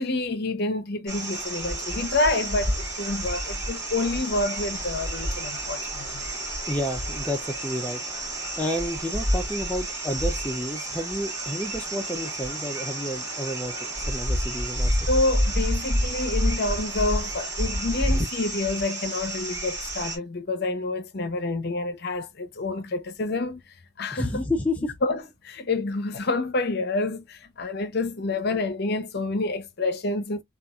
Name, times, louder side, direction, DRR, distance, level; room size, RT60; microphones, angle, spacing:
voice 1, 0.0-6.2 15.1-23.6 24.0-24.4 25.0-30.4, left 2 dB, 50° left, 0.6 m, -28 dB
sound 1, 1.1-20.2, right 1 dB, 15° right, 2.2 m, -29 dB
voice 2, 6.7-8.0 8.6-13.7 14.1-15.0 24.1-24.9, left 1 dB, 5° left, 0.4 m, -30 dB
4.0 x 2.4 x 2.3 m
head